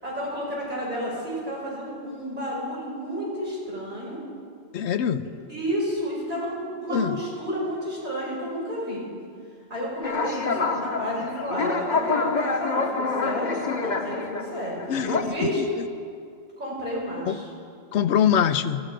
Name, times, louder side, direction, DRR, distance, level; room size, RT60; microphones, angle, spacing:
voice 1, 0.0-4.2 5.5-9.0 9.7-15.6 16.6-17.5, equal, 40° right, -6 dB, 5.7 m, -31 dB
voice 2, 4.7-5.2 6.9-7.2 14.9-15.7 17.2-17.3 17.9-18.8, left 8 dB, 70° left, 12 dB, 0.9 m, -23 dB
sound 1, 10.0-15.2, left 4 dB, 40° left, 1.0 m, -27 dB
19.0 x 13.5 x 5.1 m, 2.3 s
omnidirectional pair, 1.2 m